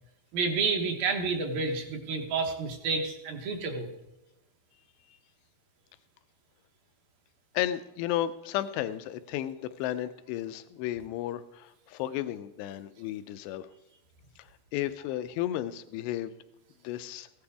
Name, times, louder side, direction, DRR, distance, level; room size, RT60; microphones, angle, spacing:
voice 1, 0.3-3.9, right 4 dB, 65° right, 4 dB, 2.8 m, -30 dB
voice 2, 7.5-13.7 14.7-16.3 16.8-17.3, left 12 dB, 90° left, 12 dB, 2.8 m, -33 dB
15.5 x 11.5 x 3.5 m, 0.99 s
omnidirectional pair, 4.8 m